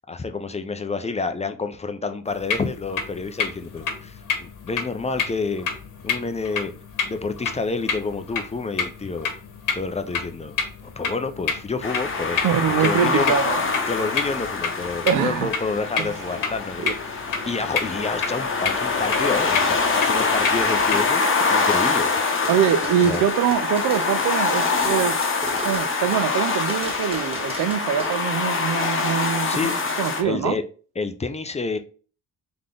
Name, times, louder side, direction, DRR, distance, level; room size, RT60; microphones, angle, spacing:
voice 1, 0.1-5.7 6.0-6.7 7.1-9.3 9.7-10.5 10.8-12.5 12.8-13.3 13.8-16.9 17.5-21.2 21.5-22.1 23.0-23.2 29.4-29.8 30.2-30.6 31.0-31.8, left 4 dB, 20° left, 0.4 m, -28 dB
sound 1, 2.3-21.0, left 6 dB, 75° left, 1.1 m, -30 dB
sound 2, 11.8-30.2, left 4 dB, 40° left, 0.8 m, -24 dB
voice 2, 12.4-13.6 15.1-15.5 16.0-16.1 16.8-16.9 22.5-25.2 25.6-30.6, right 9 dB, 75° right, 0.5 m, -23 dB
sound 3, 22.3-26.4 26.7-28.1, right 2 dB, 15° right, 1.2 m, -36 dB
3.8 x 3.4 x 3.7 m
cardioid pair, 100°, 33 cm